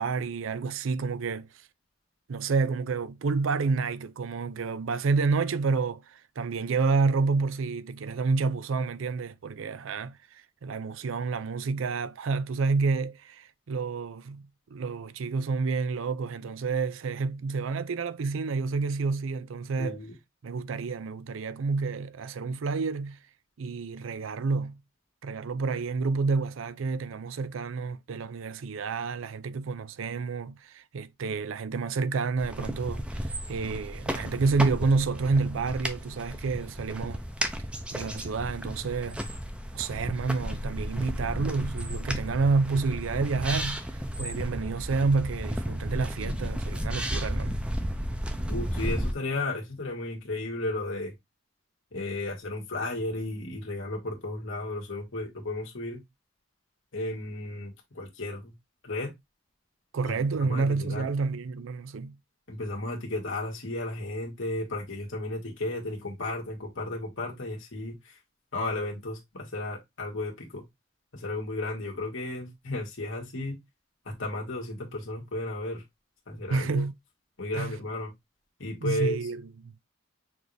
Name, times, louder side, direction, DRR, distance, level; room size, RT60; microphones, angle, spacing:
voice 1, 0.0-1.5 2.3-20.0 20.4-23.2 23.6-24.8 25.2-37.2 37.9-39.2 39.7-47.6 59.9-62.2 76.5-76.9 77.5-77.8 78.8-79.7, right 4 dB, 80° right, 0.5 m, -29 dB
voice 2, 19.8-20.1 48.5-51.1 51.9-56.0 56.9-58.5 58.8-59.1 60.0-61.1 62.5-68.2 68.5-70.6 71.1-73.6 74.0-75.8 76.3-76.9 77.4-78.1 78.6-79.2, left 2 dB, 75° left, 1.6 m, -34 dB
sound 1, 32.4-49.1, equal, 5° right, 0.5 m, -33 dB
6.1 x 2.7 x 3.2 m
head